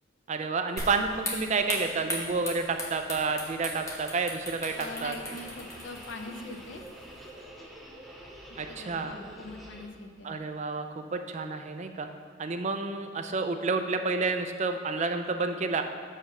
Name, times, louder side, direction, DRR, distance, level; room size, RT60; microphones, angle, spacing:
voice 1, 0.3-4.7 5.0-5.2 8.6-9.1 10.2-12.1 12.4-15.8, right 4 dB, 40° right, 7 dB, 0.5 m, -30 dB
sound 1, 0.8-7.3, left 1 dB, 15° left, 1.2 m, -39 dB
sound 2, 4.7-9.9, equal, ahead, 0.8 m, -47 dB
voice 2, 4.8-6.8 8.7-10.3, left 2 dB, 80° left, 5 dB, 0.7 m, -42 dB
6.8 x 5.0 x 5.5 m, 2.2 s
head